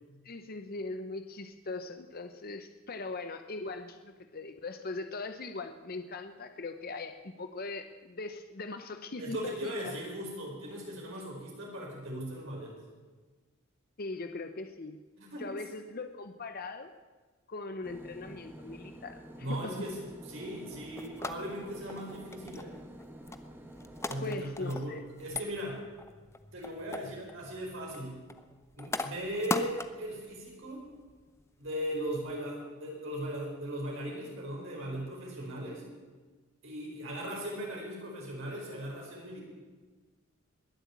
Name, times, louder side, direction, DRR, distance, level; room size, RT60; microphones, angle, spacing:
voice 1, 0.2-9.9 14.0-15.0 15.4-16.9 17.5-19.8 24.2-25.0, left 3 dB, 45° left, 8 dB, 0.8 m, -40 dB
voice 2, 9.2-12.8 15.2-15.5 19.4-22.7 24.1-25.8 26.5-28.2 28.8-30.9 31.6-35.8 36.6-39.4, equal, 65° right, -2 dB, 4.8 m, -38 dB
sound 1, 17.8-24.3, right 1 dB, 10° right, 1.2 m, -49 dB
sound 2, 20.7-32.4, left 2 dB, 15° left, 0.6 m, -41 dB
21.0 x 8.0 x 8.5 m, 1.3 s
head